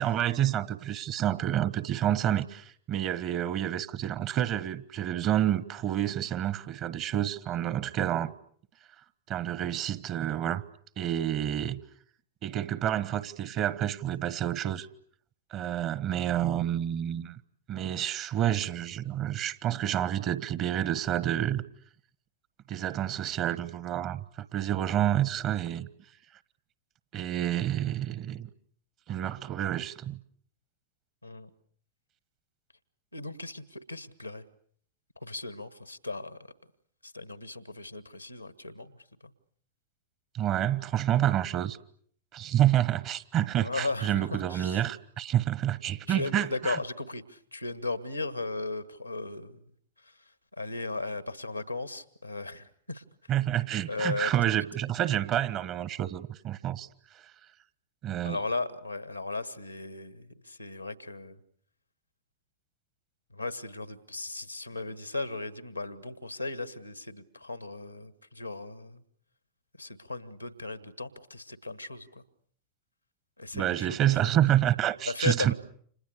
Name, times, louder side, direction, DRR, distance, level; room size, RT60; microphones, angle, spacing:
voice 1, 0.0-8.3 9.3-10.6 11.0-11.8 12.4-14.9 15.5-17.4 17.7-21.6 22.7-25.9 27.1-28.5 29.1-30.2 40.3-41.8 42.3-46.8 53.3-56.9 58.0-58.4 73.5-75.5, right 11 dB, 35° right, 1.3 m, -28 dB
voice 2, 33.1-34.4 35.2-36.4 37.0-39.3 43.6-44.8 46.1-49.6 50.0-50.1 50.5-53.0 53.9-54.3 58.2-61.4 63.3-69.0 69.8-72.2 73.4-74.0 75.1-75.5, left 3 dB, 90° left, 1.6 m, -36 dB
30.0 x 27.0 x 6.7 m
figure-of-eight pair, 90°, 0 cm